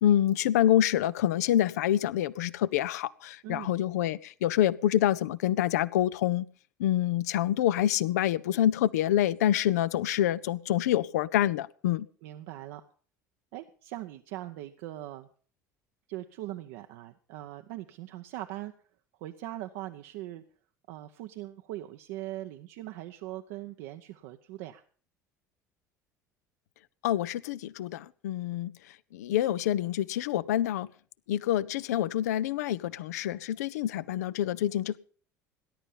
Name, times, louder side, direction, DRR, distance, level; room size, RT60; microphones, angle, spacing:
voice 1, 0.0-6.5 6.8-12.1 27.0-28.7 29.1-30.9 31.3-35.0, left 12 dB, 65° left, 0.6 m, -27 dB
voice 2, 12.2-12.8 13.5-15.3 16.1-18.7 19.2-20.4 20.9-24.8, right 15 dB, 60° right, 0.8 m, -41 dB
19.0 x 11.0 x 5.5 m
figure-of-eight pair, 60°, 9 cm